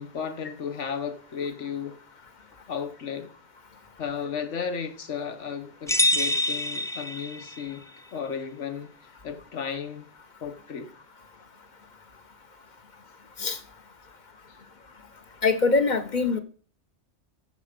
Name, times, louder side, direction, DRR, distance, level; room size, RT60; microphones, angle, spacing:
voice 1, 0.0-2.0 2.7-3.3 4.0-7.8 8.1-10.1 10.4-10.9, left 6 dB, 80° left, 1.5 m, -34 dB
sound 1, 5.9-7.7, left 1 dB, 5° left, 0.6 m, -26 dB
voice 2, 15.4-16.4, left 4 dB, 40° left, 1.0 m, -23 dB
14.0 x 5.5 x 5.1 m
omnidirectional pair, 1.2 m